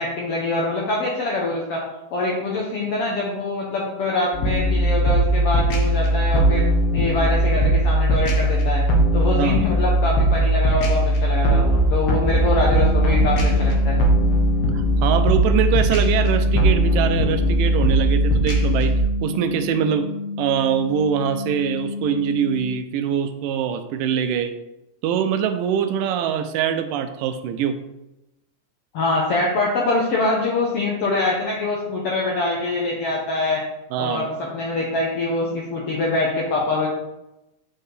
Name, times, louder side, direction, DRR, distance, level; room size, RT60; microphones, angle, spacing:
voice 1, 0.0-1.8 2.1-6.6 6.9-8.8 9.1-14.0 28.9-33.6 34.0-36.9, left 2 dB, 75° left, -2 dB, 1.3 m, -24 dB
sound 1, 4.3-19.0, right 1 dB, 60° left, 1.7 m, -19 dB
sound 2, 12.7-22.7, left 4 dB, 65° right, 1.3 m, -31 dB
voice 2, 14.7-18.9 19.2-20.1 20.4-24.5 25.0-27.8 33.9-34.3, right 8 dB, 85° right, 9 dB, 2.2 m, -23 dB
8.2 x 4.6 x 3.3 m, 0.93 s
omnidirectional pair, 3.9 m